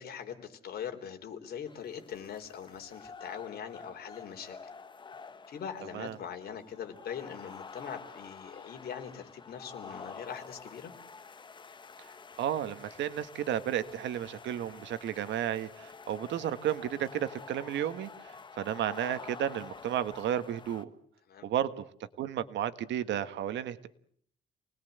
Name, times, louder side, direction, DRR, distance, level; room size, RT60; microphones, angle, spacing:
voice 1, 0.0-4.6 5.5-10.9 21.3-21.5, left 8 dB, 55° left, 5 dB, 3.6 m, -42 dB
sound 1, 1.7-20.8, left 5 dB, 25° left, 1.3 m, -49 dB
voice 2, 12.4-20.9 21.4-21.8 22.2-23.9, right 10 dB, 80° right, 12 dB, 1.5 m, -33 dB
28.5 x 20.0 x 8.1 m, 0.62 s
cardioid pair, 165°, 19 cm